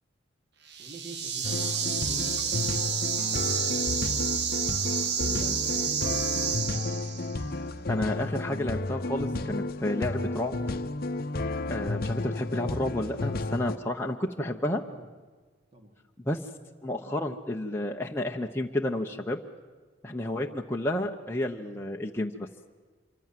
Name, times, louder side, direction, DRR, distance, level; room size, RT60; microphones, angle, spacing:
sound 1, 0.7-7.4, right 7 dB, 55° right, 1.4 m, -30 dB
voice 1, 0.8-4.7 5.2-6.6 14.0-14.1 14.9-15.1 15.7-16.0, right 1 dB, 30° right, 4 dB, 2.8 m, -46 dB
sound 2, 1.4-13.8, left 2 dB, 50° left, 0.9 m, -32 dB
voice 2, 7.9-10.5 11.7-14.8 16.3-16.4 16.8-19.4 20.0-22.5, left 1 dB, 10° left, 1 dB, 0.9 m, -31 dB
26.0 x 24.0 x 7.6 m, 1.4 s
head